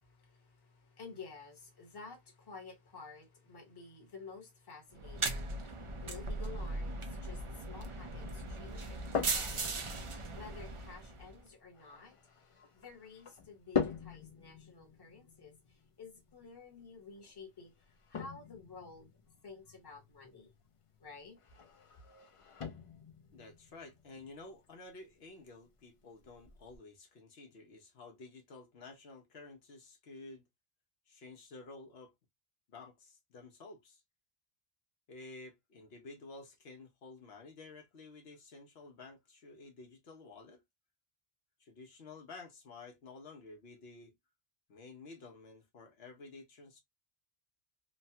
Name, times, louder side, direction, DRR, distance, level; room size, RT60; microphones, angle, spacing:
voice 1, 0.0-17.7 18.1-19.1 19.4-20.5 21.0-21.4, left 4 dB, 25° left, 0.9 m, -52 dB
sound 1, 5.0-11.4, right 3 dB, 45° right, 0.4 m, -38 dB
sound 2, 8.7-26.8, left 6 dB, 45° left, 0.4 m, -44 dB
voice 2, 23.3-30.4 31.1-32.1 32.7-34.0 35.1-40.6 41.6-44.1 44.7-46.8, left 3 dB, 75° left, 1.0 m, -52 dB
3.1 x 2.1 x 2.7 m
omnidirectional pair, 1.1 m